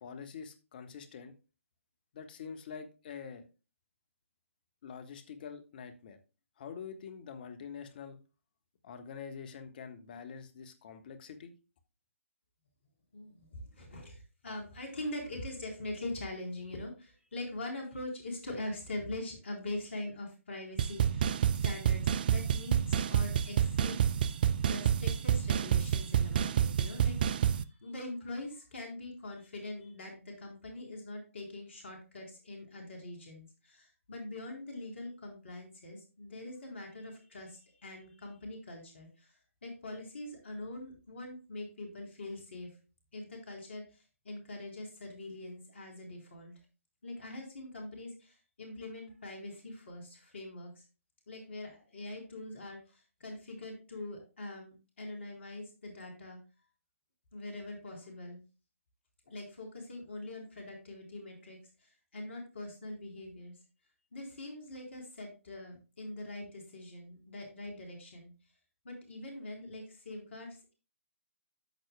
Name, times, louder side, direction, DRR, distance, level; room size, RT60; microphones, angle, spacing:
voice 1, 0.0-1.3 2.1-3.4 4.8-6.2 6.6-8.2 8.8-11.5, left 6 dB, 40° left, 9 dB, 1.3 m, -45 dB
voice 2, 13.1-24.0 24.5-39.3 39.6-42.7 43.1-46.5 47.0-50.8 51.3-56.4 57.3-58.4 59.3-63.5 64.1-68.3 68.8-70.7, left 2 dB, 60° left, 1 dB, 3.8 m, -43 dB
sound 1, 20.8-27.6, right 9 dB, 40° right, 0.4 m, -28 dB
13.5 x 6.2 x 2.2 m, 0.32 s
figure-of-eight pair, 140°, 7 cm